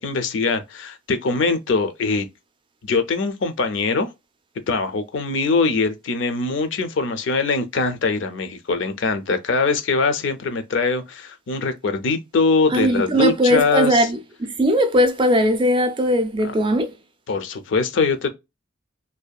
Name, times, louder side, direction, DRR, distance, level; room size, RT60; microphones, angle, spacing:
voice 1, 0.0-2.3 2.8-4.1 4.7-14.1 16.4-16.5 17.3-18.3, left 4 dB, 65° left, 0.5 m, -22 dB
voice 2, 12.7-16.9, equal, 25° right, 0.3 m, -19 dB
2.7 x 2.2 x 2.2 m
head